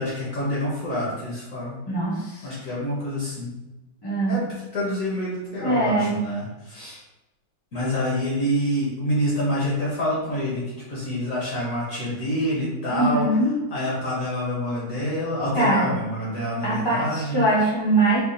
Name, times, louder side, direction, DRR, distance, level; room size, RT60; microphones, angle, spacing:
voice 1, 0.0-1.8 2.4-3.6 4.3-4.4 4.7-7.0 7.7-13.3 13.7-17.5, equal, 50° left, -6 dB, 1.1 m, -27 dB
voice 2, 1.9-2.5 4.0-4.4 5.6-6.2 12.9-13.6 15.5-16.0 16.6-18.2, right 2 dB, 20° left, -6 dB, 0.7 m, -22 dB
4.7 x 2.4 x 2.6 m, 1.0 s
omnidirectional pair, 2.1 m